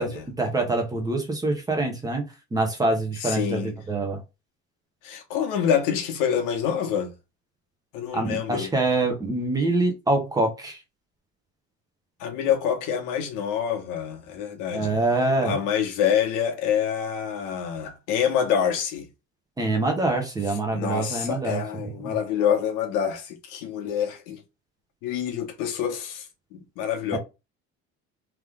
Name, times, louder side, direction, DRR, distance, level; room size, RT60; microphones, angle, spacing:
voice 1, 0.4-3.6 3.9-4.2 8.1-10.8 14.7-15.6 19.6-21.6 22.0-22.2 27.1-27.2, right 2 dB, 10° right, 1.0 m, -25 dB
voice 2, 3.2-3.7 5.0-7.1 7.9-8.7 12.2-14.9 15.4-19.1 20.5-24.4 25.0-27.2, left 8 dB, 75° left, 1.5 m, -26 dB
3.7 x 3.2 x 3.6 m
cardioid pair, 165°, 32 cm